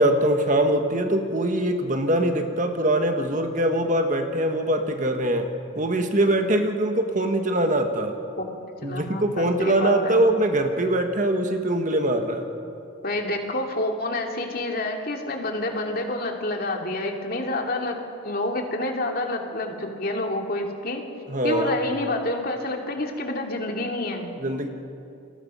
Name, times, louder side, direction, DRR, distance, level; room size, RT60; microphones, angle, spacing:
voice 1, 0.0-5.5 5.8-8.1 8.8-12.4 21.3-21.7 24.4-24.7, right 1 dB, 35° right, 5 dB, 1.7 m, -22 dB
voice 2, 8.8-10.2 13.0-18.0 18.2-21.0 21.4-24.3, left 2 dB, 45° left, 2 dB, 2.7 m, -28 dB
29.0 x 23.0 x 5.7 m, 2.6 s
head